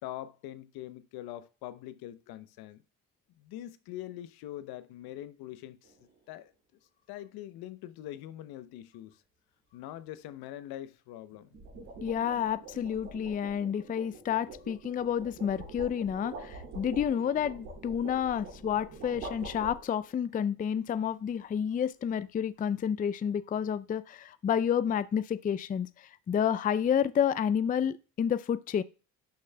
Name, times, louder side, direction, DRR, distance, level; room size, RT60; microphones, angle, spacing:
voice 1, 0.0-2.8 3.4-6.5 7.1-9.2 9.7-11.5, left 13 dB, 65° left, 0.8 m, -43 dB
sound 1, 5.8-6.1 11.3-20.2, right 2 dB, 75° right, 2.7 m, -45 dB
voice 2, 12.0-28.8, left 8 dB, 20° left, 0.4 m, -30 dB
11.5 x 6.4 x 2.2 m
hypercardioid pair, 50°, 40 cm